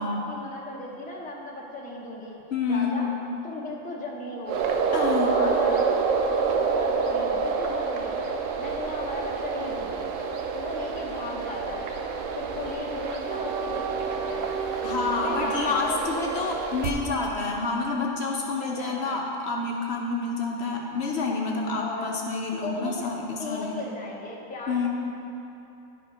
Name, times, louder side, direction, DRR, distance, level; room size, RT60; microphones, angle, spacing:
voice 1, 0.0-2.4 2.7-3.1 3.4-4.8 5.1-6.1 6.5-8.3 8.6-10.1 10.5-11.9 12.4-14.5 15.2-16.8 18.6-19.2 21.8-22.2 22.5-23.1 23.4-24.9, left 2 dB, 10° left, -3 dB, 0.7 m, -36 dB
voice 2, 2.5-3.0 4.9-5.3 14.8-23.8 24.7-24.9, left 3 dB, 60° left, 0 dB, 0.9 m, -28 dB
sound 1, 4.5-16.9, right 5 dB, 75° right, 1.0 m, -28 dB
11.0 x 4.4 x 4.9 m, 2.9 s
omnidirectional pair, 1.3 m